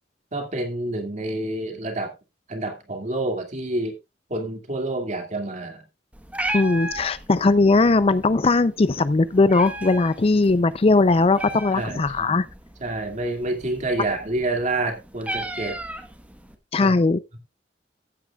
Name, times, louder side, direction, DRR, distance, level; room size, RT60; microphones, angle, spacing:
voice 1, 0.3-2.1 2.5-3.9 4.3-5.8 11.7-12.4 12.8-15.8 16.8-16.9, right 2 dB, 40° right, 2.2 m, -28 dB
Meow, 6.1-16.5, right 1 dB, 10° right, 1.2 m, -36 dB
voice 2, 6.5-12.5 16.7-17.2, left 3 dB, 35° left, 0.5 m, -19 dB
15.5 x 8.4 x 2.3 m
head